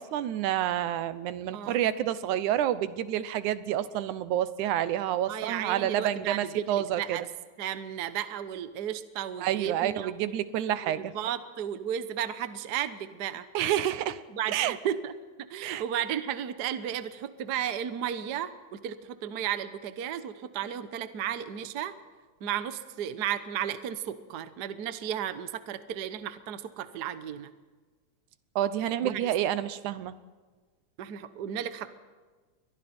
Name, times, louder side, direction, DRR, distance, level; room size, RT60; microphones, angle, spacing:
voice 1, 0.0-7.2 9.4-11.1 13.5-14.2 14.5-14.8 15.6-15.8 28.6-30.1, right 11 dB, 90° right, 14 dB, 2.4 m, -29 dB
voice 2, 1.5-1.8 5.3-7.2 7.6-10.1 11.0-13.4 14.3-15.1 15.5-21.9 22.4-27.5 29.0-29.3 31.0-31.9, right 10 dB, 70° right, 11 dB, 0.9 m, -34 dB
29.5 x 23.5 x 4.4 m, 1.4 s
omnidirectional pair, 3.4 m